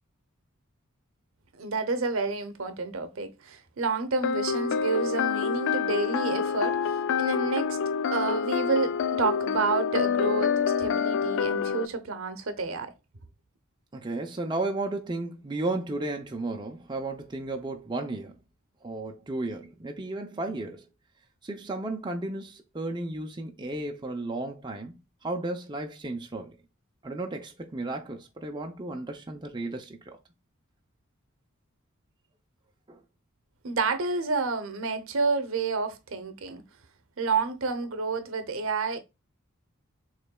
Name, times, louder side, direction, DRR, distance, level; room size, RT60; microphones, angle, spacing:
voice 1, 1.6-7.8 8.1-12.9 33.6-36.6 37.2-39.0, right 4 dB, 65° right, 0.8 m, -29 dB
sound 1, 4.2-11.9, left 6 dB, 60° left, 0.3 m, -27 dB
voice 2, 13.9-18.4 18.8-20.8 21.4-25.0 25.2-26.6 27.0-30.2 32.9-33.0, right 2 dB, 20° right, 0.6 m, -34 dB
6.6 x 3.2 x 2.3 m
head